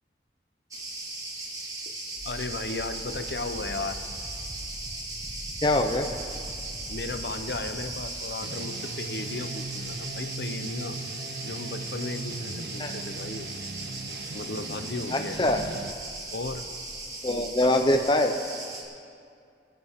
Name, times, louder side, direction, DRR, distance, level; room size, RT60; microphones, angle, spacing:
Cricket, 0.7-18.8, right 2 dB, 20° right, 1.6 m, -38 dB
voice 1, 2.2-4.0 6.9-11.0 11.4-13.5 14.3-15.4 16.3-16.6 17.3-17.7, left 3 dB, 60° left, 9 dB, 0.7 m, -35 dB
sound 1, 2.2-8.0, equal, ahead, 1.4 m, -42 dB
voice 2, 5.6-6.1 12.8-12.9 15.1-15.6 17.2-18.3, left 1 dB, 25° left, 5 dB, 0.6 m, -23 dB
sound 2, 8.4-15.9, right 3 dB, 60° right, 0.7 m, -39 dB
23.0 x 10.5 x 3.6 m, 2.4 s
head